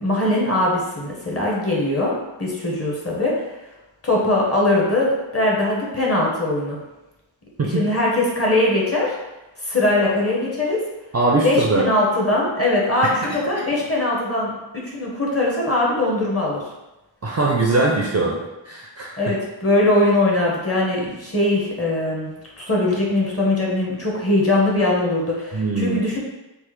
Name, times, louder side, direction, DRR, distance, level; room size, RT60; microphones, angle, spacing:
voice 1, 0.0-2.1 2.4-3.3 4.0-6.8 7.6-9.1 9.6-10.8 11.4-16.6 19.2-26.2, left 2 dB, 30° left, -4 dB, 0.8 m, -21 dB
voice 2, 11.1-11.8 13.2-13.4 17.2-18.4 18.7-19.2 25.5-26.0, right 2 dB, 35° right, -2 dB, 0.4 m, -21 dB
3.2 x 2.0 x 3.1 m, 1.0 s
wide cardioid pair, 80°, 49 cm